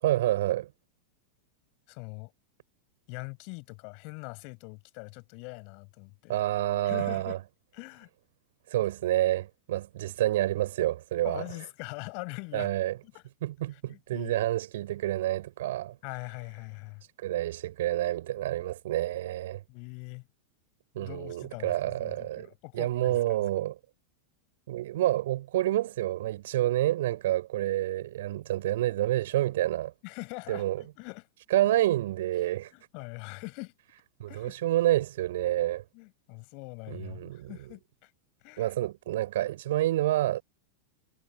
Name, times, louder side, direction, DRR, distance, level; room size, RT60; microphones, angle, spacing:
voice 1, 0.0-0.7 6.3-7.4 8.7-11.4 12.5-13.0 13.4-16.0 17.2-19.6 21.0-22.5 22.7-23.8 24.7-29.9 30.5-30.8 31.5-32.7 34.2-35.8 36.9-37.5 38.6-40.4, right 14 dB, 55° right, 6.9 m, -28 dB
voice 2, 1.9-2.3 3.1-6.4 6.8-7.4 7.7-8.1 11.2-12.7 13.1-13.2 13.9-14.3 16.0-17.0 19.7-20.3 21.0-23.4 30.0-31.3 32.7-33.7 34.3-34.5 35.9-38.1 38.4-38.7, left 37 dB, 45° left, 7.7 m, -42 dB
figure-of-eight pair, 90°, 0 cm